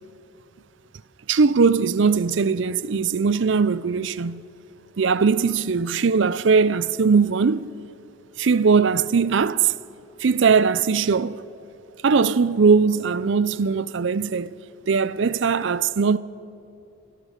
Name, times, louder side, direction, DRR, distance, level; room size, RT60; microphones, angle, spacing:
voice 1, 1.3-4.4 5.0-7.7 8.4-9.7 10.2-11.4 12.0-14.5 14.9-16.2, right 5 dB, 65° right, 0.5 m, -20 dB
25.5 x 17.0 x 6.5 m
head